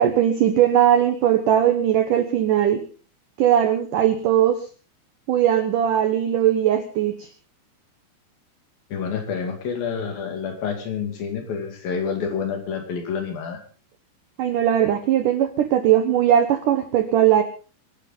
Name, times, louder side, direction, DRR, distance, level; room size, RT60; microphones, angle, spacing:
voice 1, 0.0-2.8 3.4-4.6 5.3-7.3 14.4-17.4, right 10 dB, 80° right, 8 dB, 1.9 m, -19 dB
voice 2, 8.9-13.6, left 6 dB, 55° left, 5 dB, 3.8 m, -28 dB
25.0 x 11.5 x 4.0 m, 0.36 s
omnidirectional pair, 5.4 m